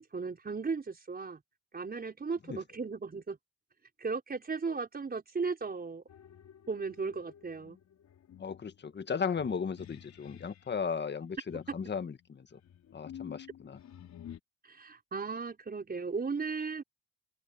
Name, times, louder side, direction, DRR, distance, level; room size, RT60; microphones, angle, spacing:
voice 1, 0.0-1.4 1.7-3.4 4.0-6.0 6.7-7.8 14.6-16.8, right 4 dB, 30° right, 4.5 m, -36 dB
sound 1, 6.1-10.8 11.5-14.4, left 9 dB, 65° left, 4.4 m, -51 dB
voice 2, 8.4-12.6 12.9-13.8, left 6 dB, 35° left, 1.7 m, -36 dB
cardioid pair, 90°, 30 cm